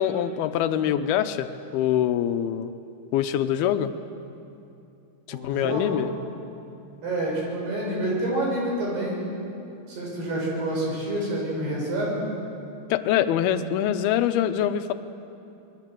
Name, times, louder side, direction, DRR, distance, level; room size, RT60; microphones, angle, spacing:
voice 1, 0.0-1.5 1.7-2.7 3.1-3.9 5.3-6.1 12.9-14.9, left 10 dB, 80° left, 9 dB, 2.7 m, -24 dB
voice 2, 5.3-6.0 7.0-9.1 9.9-12.2, right 1 dB, 85° right, -3 dB, 8.7 m, -28 dB
27.0 x 21.5 x 7.7 m, 2.7 s
omnidirectional pair, 4.5 m